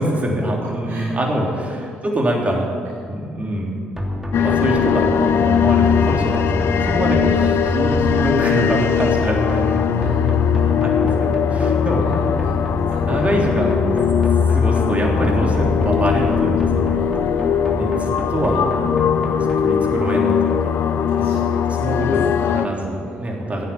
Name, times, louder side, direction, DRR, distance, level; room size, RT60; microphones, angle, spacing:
voice 1, 0.0-2.7 3.1-3.8 4.3-10.2 10.6-12.0 13.0-13.9 14.5-17.0 17.7-18.6 19.6-20.7 21.1-21.4 21.8-23.6, right 1 dB, 25° right, -1 dB, 3.5 m, -24 dB
voice 2, 1.7-2.0 2.8-3.0 3.4-3.6 7.0-7.1 10.0-11.2 11.5-11.6 12.1-13.4 13.8-14.0 16.9-17.6 21.1-21.8 22.4-23.5, right 2 dB, 50° right, -2 dB, 1.7 m, -41 dB
sound 1, 4.0-19.6, equal, 5° right, 3.2 m, -29 dB
sound 2, 4.3-22.7, left 8 dB, 55° left, 0.7 m, -19 dB
17.0 x 9.3 x 7.3 m, 2.2 s
figure-of-eight pair, 45°, 5 cm